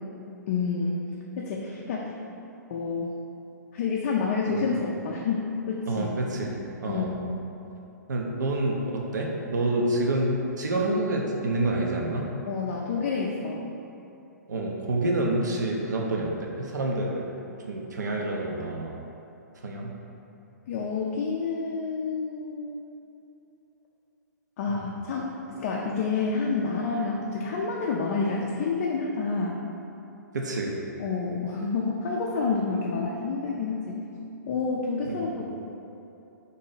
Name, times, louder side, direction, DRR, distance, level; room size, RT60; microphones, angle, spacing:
voice 1, 0.5-0.9 1.4-2.2 2.7-3.1 3.7-6.1 6.9-7.2 12.5-13.6 20.7-22.8 24.6-29.6 31.0-34.0 34.5-35.3, left 4 dB, 45° left, -2 dB, 0.4 m, -28 dB
voice 2, 5.9-7.1 8.1-12.3 14.5-17.2 17.6-18.9 19.6-19.9 24.7-24.8 30.3-30.8 35.1-35.3, right 2 dB, 75° right, -1 dB, 0.4 m, -28 dB
2.9 x 2.6 x 3.9 m, 2.9 s
figure-of-eight pair, 120°, 10 cm